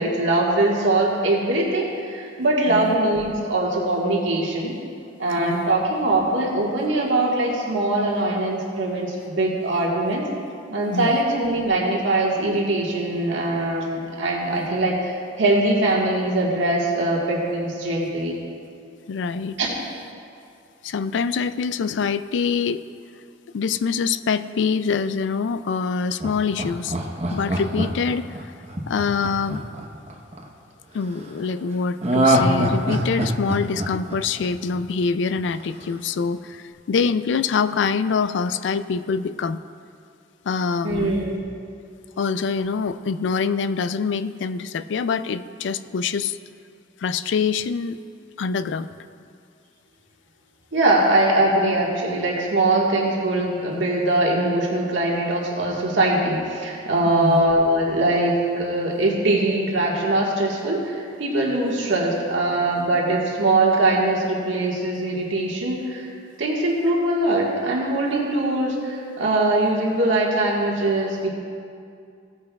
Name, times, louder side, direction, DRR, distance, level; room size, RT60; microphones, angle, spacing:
voice 1, 0.0-4.8 5.2-10.2 10.7-18.4 19.6-19.8 40.8-41.4 50.7-66.1 66.4-71.3, right 2 dB, 80° right, -3 dB, 1.6 m, -22 dB
voice 2, 10.9-11.2 19.1-19.6 20.8-22.8 23.5-27.0 27.3-28.4 28.9-29.7 30.9-39.6 40.5-41.2 42.2-46.4 47.0-48.0 48.4-48.9 57.1-57.4, left 5 dB, 70° left, 13 dB, 0.3 m, -25 dB
Laughter, 26.2-30.4 32.0-35.0 35.4-35.5, right 1 dB, 35° right, 1.0 m, -23 dB
16.5 x 9.7 x 2.4 m, 2.4 s
head